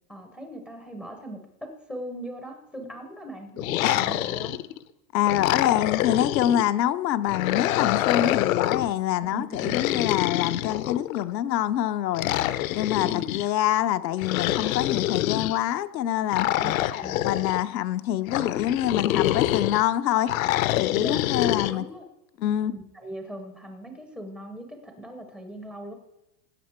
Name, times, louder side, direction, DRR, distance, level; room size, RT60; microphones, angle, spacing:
voice 1, 0.1-4.6 9.2-10.0 13.0-13.2 16.6-17.2 21.0-22.1 22.4-25.9, right 1 dB, 5° left, 3 dB, 0.4 m, -39 dB
sound 1, 3.6-4.8 5.3-6.7 7.3-8.9 9.5-11.2 12.1-13.5 14.2-15.6 16.3-17.6 18.3-19.8 20.3-21.7, left 14 dB, 55° left, 0.6 m, -26 dB
voice 2, 5.1-12.3 12.7-16.5 17.2-20.3 20.8-21.9 22.4-22.7, left 12 dB, 90° left, 10 dB, 1.0 m, -25 dB
16.5 x 8.8 x 4.5 m, 0.90 s
supercardioid pair, 160°, 49 cm